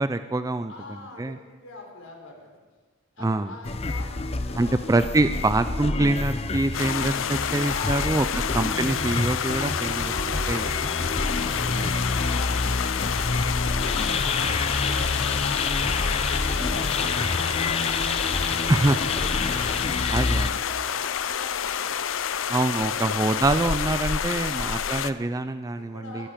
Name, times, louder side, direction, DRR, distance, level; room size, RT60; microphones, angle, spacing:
voice 1, 0.0-0.7 1.2-1.4 3.2-3.5 4.6-8.3 8.5-10.1 10.5-10.6 11.8-11.9 18.7-19.0 20.1-20.6 22.5-26.3, right 2 dB, 15° right, 10 dB, 0.3 m, -25 dB
voice 2, 0.7-2.6 3.2-5.2 7.5-8.7 10.1-10.8 11.2-15.9 16.3-22.1 22.8-23.6 24.3-24.8 25.7-26.3, left 2 dB, 85° left, 0 dB, 4.1 m, -44 dB
sound 1, 3.6-20.5, left 3 dB, 30° left, 0.6 m, -28 dB
sound 2, 6.7-25.1, left 8 dB, 70° left, 0.5 m, -29 dB
sound 3, 9.7-13.3 14.8-18.5 19.3-20.6, right 2 dB, ahead, 5.0 m, -46 dB
21.5 x 10.0 x 5.1 m, 1.3 s
head